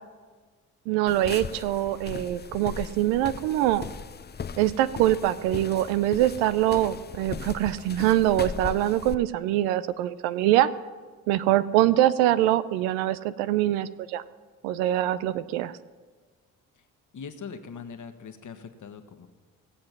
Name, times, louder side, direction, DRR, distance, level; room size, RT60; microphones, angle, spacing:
voice 1, 0.9-3.9 4.6-10.7 11.3-14.2 14.6-15.7, right 13 dB, 75° right, 15 dB, 0.6 m, -24 dB
sound 1, 1.1-9.1, left 6 dB, 25° left, 0.6 m, -38 dB
voice 2, 17.1-19.3, left 6 dB, 45° left, 8 dB, 1.4 m, -42 dB
18.0 x 7.6 x 6.0 m, 1.5 s
hypercardioid pair, 45°, 42 cm